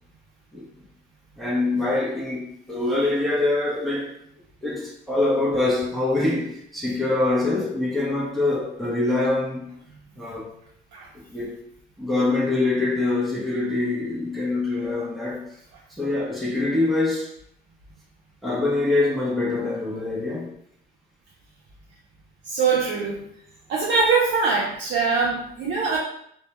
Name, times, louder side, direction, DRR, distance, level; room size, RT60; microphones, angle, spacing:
voice 1, 1.4-4.1 4.6-9.7 10.1-10.5 11.3-11.6 12.0-15.5 16.0-17.3 18.4-20.5, left 2 dB, ahead, 0.6 m, -24 dB
voice 2, 22.5-23.2 23.7-26.0, right 4 dB, 60° right, 0.5 m, -22 dB
2.1 x 2.0 x 2.8 m
cardioid pair, 90°, 20 cm